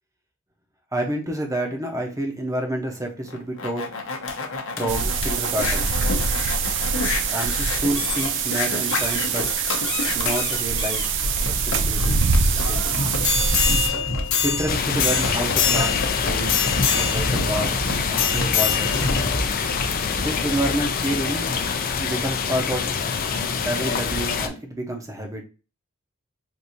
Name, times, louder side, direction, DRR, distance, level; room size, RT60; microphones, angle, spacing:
voice 1, 0.9-3.8 4.8-5.9 7.3-9.5 10.1-11.0 11.5-12.2 12.7-12.8 14.4-16.6 16.9-17.8 18.1-18.9 20.2-21.5 22.0-23.0 23.6-25.4, right 1 dB, 15° right, 3 dB, 0.8 m, -28 dB
sound 1, 3.3-20.9 21.5-21.6, left 4 dB, 60° left, 0.8 m, -26 dB
sound 2, 4.9-13.9, right 5 dB, 55° right, 0.5 m, -24 dB
sound 3, 14.7-24.5, left 6 dB, 40° left, 0.5 m, -25 dB
4.6 x 2.7 x 2.6 m, 0.32 s
head